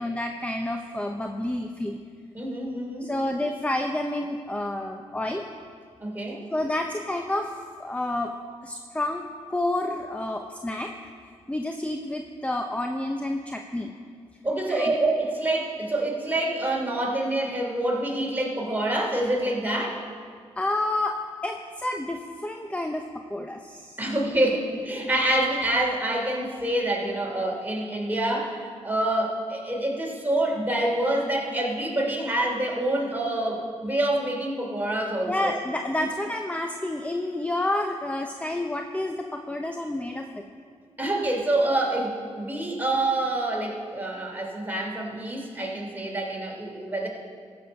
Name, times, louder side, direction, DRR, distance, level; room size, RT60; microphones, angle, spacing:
voice 1, 0.0-2.0 3.0-5.5 6.5-7.5 7.8-8.3 8.6-9.2 9.5-11.0 11.5-13.9 14.7-14.9 20.6-24.0 35.3-40.4, left 1 dB, 10° left, 4 dB, 0.7 m, -29 dB
voice 2, 2.3-3.1 6.0-6.4 14.4-20.0 24.0-35.5 41.0-47.1, right 1 dB, 15° right, -1 dB, 3.1 m, -26 dB
13.5 x 7.0 x 5.4 m, 2.1 s
supercardioid pair, 50°, 12 cm